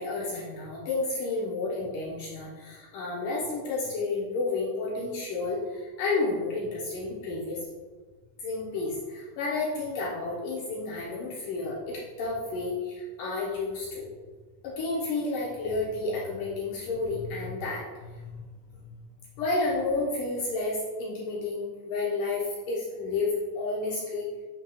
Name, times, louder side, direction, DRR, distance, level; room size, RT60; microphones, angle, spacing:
voice 1, 0.0-7.7 8.4-14.0 14.6-18.1 19.4-24.3, left 3 dB, 70° left, -5 dB, 2.3 m, -31 dB
8.8 x 6.2 x 2.3 m, 1.4 s
omnidirectional pair, 4.3 m